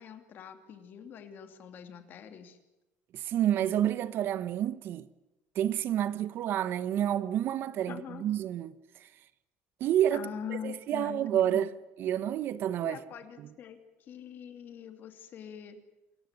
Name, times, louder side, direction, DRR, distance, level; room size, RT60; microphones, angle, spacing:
voice 1, 0.0-2.6 7.9-8.2 10.1-11.7 12.8-15.8, left 8 dB, 45° left, 2.9 m, -43 dB
voice 2, 3.1-5.1 5.5-9.1 9.8-11.7 12.0-13.0 13.4-13.5, right 11 dB, 50° right, 1.1 m, -29 dB
27.5 x 15.0 x 9.9 m
cardioid pair, 160°, 5 cm